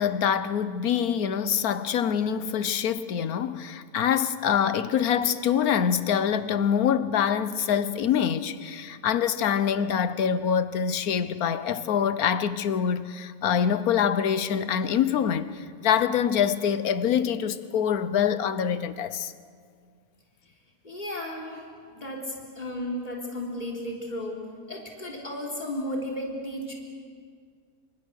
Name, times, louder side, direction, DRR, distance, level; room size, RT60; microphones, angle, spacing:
voice 1, 0.0-19.3, left 8 dB, 75° left, 1.4 m, -25 dB
voice 2, 20.8-26.7, left 1 dB, 30° left, 4.1 m, -34 dB
28.0 x 25.5 x 6.5 m
omnidirectional pair, 1.6 m